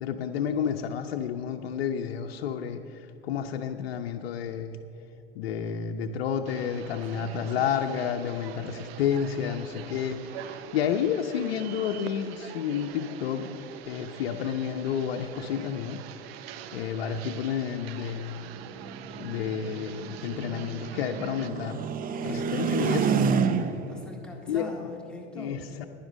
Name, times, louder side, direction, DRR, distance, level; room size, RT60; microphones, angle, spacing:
voice 1, 0.0-2.8 3.2-4.8 5.4-13.5 13.8-16.0 16.7-18.5 19.2-21.9 22.2-23.2 24.5-24.7 25.3-25.8, left 8 dB, 85° left, 4 dB, 0.7 m, -30 dB
sound 1, 6.5-21.5, right 9 dB, 75° right, 0.7 m, -44 dB
voice 2, 7.1-7.6 23.9-25.7, left 3 dB, 5° left, -1 dB, 1.9 m, -42 dB
sound 2, 18.5-24.0, right 6 dB, 30° right, 0.6 m, -29 dB
10.5 x 10.0 x 6.2 m, 2.6 s
supercardioid pair, 110°, 30 cm